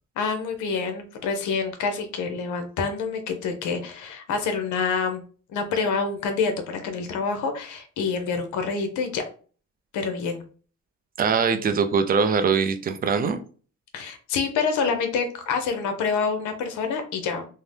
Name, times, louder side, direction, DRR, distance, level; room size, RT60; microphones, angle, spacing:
voice 1, 0.2-5.2 5.5-9.3 9.9-10.4 13.9-17.5, left 5 dB, 75° left, 6 dB, 0.6 m, -27 dB
voice 2, 11.2-13.4, right 5 dB, 30° right, 8 dB, 0.4 m, -22 dB
2.7 x 2.0 x 3.2 m, 0.40 s
cardioid pair, 90°, 30 cm